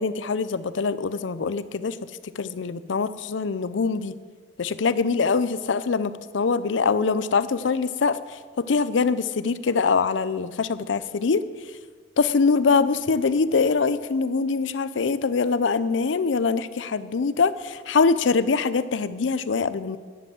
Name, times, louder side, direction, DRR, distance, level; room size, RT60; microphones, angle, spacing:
voice 1, 0.0-2.0 2.4-4.1 4.6-8.2 8.6-11.4 12.2-20.0, left 4 dB, 85° left, 15 dB, 0.5 m, -23 dB
11.0 x 7.8 x 7.6 m, 1.5 s
head